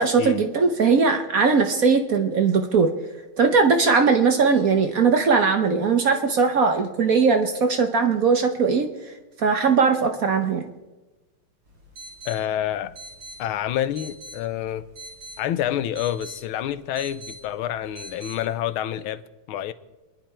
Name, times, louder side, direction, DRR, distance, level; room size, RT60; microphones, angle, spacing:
voice 1, 0.0-2.9 3.4-8.9 9.4-10.7, right 5 dB, 55° right, 1.1 m, -19 dB
sound 1, 11.6-18.4, right 1 dB, 70° right, 4.7 m, -44 dB
voice 2, 12.2-12.9 13.4-14.8 15.4-19.2 19.5-19.7, left 11 dB, 85° left, 1.5 m, -28 dB
27.5 x 10.5 x 4.4 m
omnidirectional pair, 2.3 m